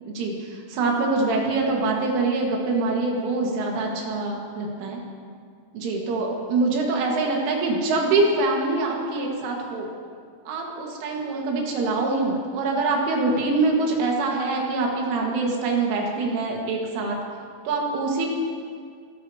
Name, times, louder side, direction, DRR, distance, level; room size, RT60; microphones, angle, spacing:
voice 1, 0.0-5.0 5.7-9.9 10.5-17.2 17.7-18.3, right 3 dB, 85° right, -1 dB, 4.3 m, -24 dB
27.5 x 13.0 x 2.9 m, 2.1 s
omnidirectional pair, 5.5 m